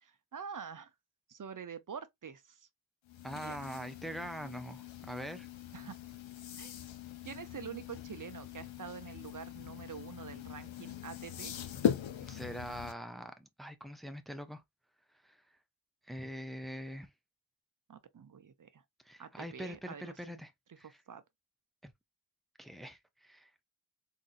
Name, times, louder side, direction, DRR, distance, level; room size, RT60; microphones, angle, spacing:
voice 1, 0.0-0.9 1.3-2.7 3.4-3.6 5.7-6.0 6.6-6.7 7.2-11.5 17.9-18.8 19.2-20.4 20.8-21.2, right 7 dB, 45° right, 0.6 m, -46 dB
sound 1, 3.1-12.9, left 9 dB, 80° left, 0.7 m, -40 dB
voice 2, 3.2-5.5 12.2-14.6 15.2-15.4 16.1-17.1 19.0-20.5 20.8-21.0 21.8-21.9 22.6-23.6, equal, ahead, 0.5 m, -43 dB
3.9 x 2.7 x 2.5 m
wide cardioid pair, 90°, 45 cm